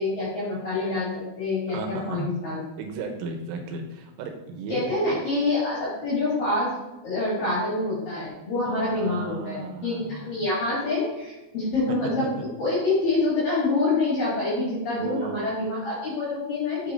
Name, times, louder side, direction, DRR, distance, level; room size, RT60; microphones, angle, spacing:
voice 1, 0.0-2.6 4.7-6.7 7.0-12.2 12.6-16.9, left 2 dB, 50° left, -8 dB, 4.1 m, -26 dB
voice 2, 1.7-2.3 2.8-5.0 8.7-10.3 11.9-12.5 15.0-15.5, right 5 dB, 85° right, 5 dB, 3.4 m, -35 dB
8.0 x 7.8 x 2.6 m, 1.0 s
omnidirectional pair, 5.7 m